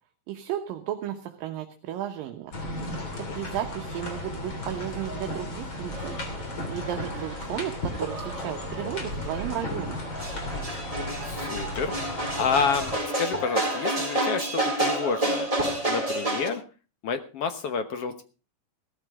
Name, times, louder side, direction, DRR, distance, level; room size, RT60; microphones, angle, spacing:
voice 1, 0.3-2.5 3.3-6.2 6.7-10.0, right 11 dB, 75° right, 5 dB, 2.8 m, -34 dB
sound 1, 2.5-13.0, left 1 dB, 35° left, 3.7 m, -35 dB
voice 2, 2.8-3.4 11.2-15.5 15.9-16.6 17.0-18.2, left 5 dB, 65° left, 9 dB, 1.6 m, -30 dB
sound 2, 5.9-16.5, right 1 dB, 10° right, 4.3 m, -30 dB
17.0 x 14.0 x 3.7 m, 0.34 s
omnidirectional pair, 4.1 m